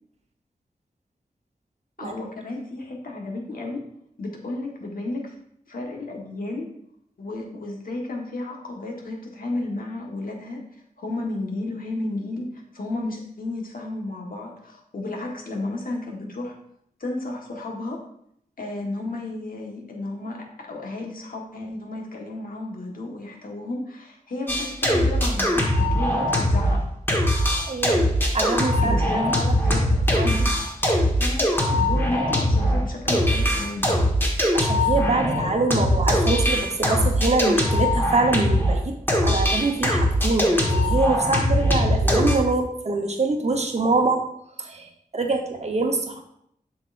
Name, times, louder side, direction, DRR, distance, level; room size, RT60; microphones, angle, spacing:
voice 1, 2.0-3.8 4.2-5.3 5.7-6.7 7.2-10.6 11.0-12.5 12.7-16.5 17.0-18.0 18.6-26.8 28.8-34.0, left 2 dB, 65° left, 0 dB, 1.4 m, -32 dB
sound 1, 24.5-26.8 27.1-38.8 39.1-42.4, equal, 15° left, 1.5 m, -21 dB
voice 2, 27.7-28.0 28.3-29.1 29.4-29.5 30.1-30.3 34.5-39.0 39.2-44.2 44.6-46.2, right 3 dB, 45° right, 3 dB, 1.0 m, -24 dB
7.6 x 6.2 x 2.6 m, 0.71 s
wide cardioid pair, 85°, 15 cm